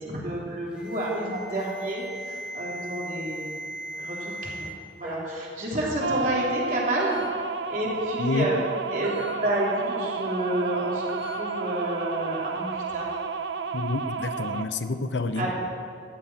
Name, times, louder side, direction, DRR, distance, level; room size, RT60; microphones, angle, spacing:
voice 1, 0.0-3.6 4.0-4.7 5.0-7.2 7.7-8.6 8.9-13.1 15.3-15.5, right 1 dB, 45° right, -4 dB, 3.3 m, -29 dB
Alarm, 0.7-4.7 5.0-5.4 6.3-6.4 7.0-7.2 9.0-9.2 11.1-11.3, right 1 dB, 5° right, 3.2 m, -38 dB
sound 1, 6.0-14.6, right 4 dB, 90° right, 0.7 m, -31 dB
voice 2, 13.7-15.5, left 3 dB, 85° left, 9 dB, 0.7 m, -28 dB
14.5 x 7.7 x 8.6 m, 2.3 s
head